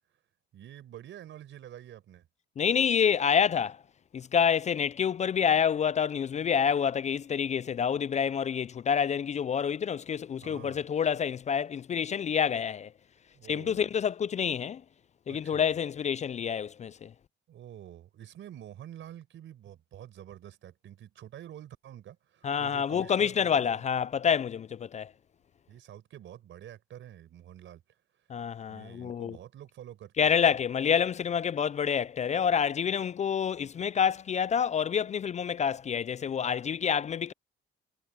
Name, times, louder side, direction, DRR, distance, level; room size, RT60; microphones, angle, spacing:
voice 1, 0.5-2.3 10.4-10.8 13.3-13.9 15.3-15.7 17.5-23.8 25.7-27.8 28.7-30.6, right 11 dB, 75° right, 4.9 m, -48 dB
voice 2, 2.6-3.8 4.1-12.9 13.5-14.8 15.3-17.1 22.4-25.1 28.3-29.4 30.2-37.3, left 7 dB, 35° left, 0.4 m, -28 dB
cardioid pair, 90°, 20 cm